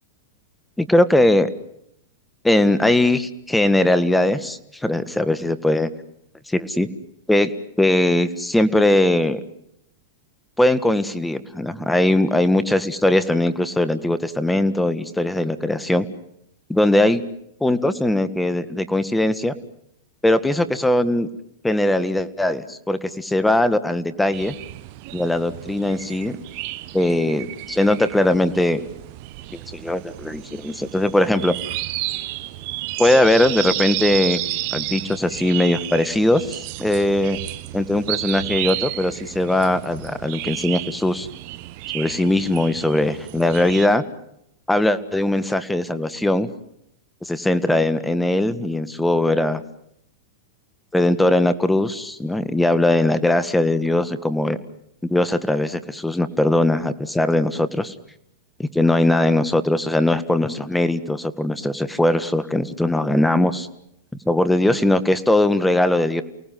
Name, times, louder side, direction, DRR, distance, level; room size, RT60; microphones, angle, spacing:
voice 1, 0.8-1.5 2.4-5.9 6.5-6.9 7.3-7.5 7.8-9.4 10.6-16.1 16.7-17.2 17.6-19.5 20.2-21.3 21.6-24.5 25.1-26.4 26.9-28.8 29.7-31.5 33.0-34.4 34.7-37.4 37.7-41.3 41.9-44.0 44.7-46.5 47.2-49.6 50.9-54.6 55.1-57.9 58.6-63.7 64.2-66.2, left 1 dB, 5° left, 13 dB, 1.6 m, -20 dB
sound 1, 24.3-43.9, right 16 dB, 55° right, 1.3 m, -32 dB
29.0 x 18.5 x 7.7 m, 0.77 s
hypercardioid pair, 110°, 0 cm